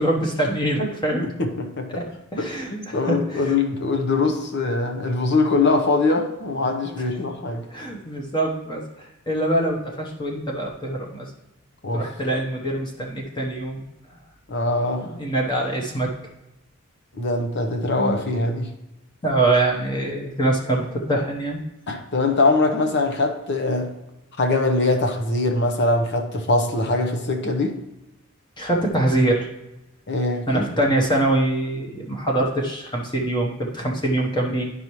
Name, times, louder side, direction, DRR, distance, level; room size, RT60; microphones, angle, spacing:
voice 1, 0.0-1.3 1.9-2.0 2.3-3.5 7.7-11.3 11.9-13.8 15.0-16.1 18.0-18.2 19.2-21.6 28.6-29.5 30.5-34.7, right 1 dB, 20° left, 0 dB, 1.0 m, -24 dB
voice 2, 1.2-1.9 2.4-7.7 11.8-12.1 14.5-15.1 17.2-18.7 21.9-23.9 24.4-27.8 30.1-30.7, left 3 dB, 50° left, 4 dB, 0.9 m, -22 dB
10.0 x 5.5 x 3.1 m, 0.94 s
head